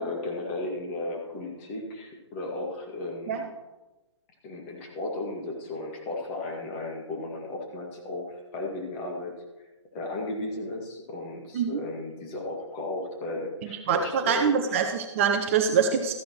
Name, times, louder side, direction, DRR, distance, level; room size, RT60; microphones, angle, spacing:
voice 1, 0.0-3.5 4.4-9.4 9.9-14.8, left 2 dB, 25° left, -1 dB, 1.9 m, -35 dB
voice 2, 13.6-16.1, right 6 dB, 25° right, 5 dB, 0.6 m, -25 dB
14.0 x 10.5 x 3.0 m, 1.1 s
figure-of-eight pair, 130°, 15 cm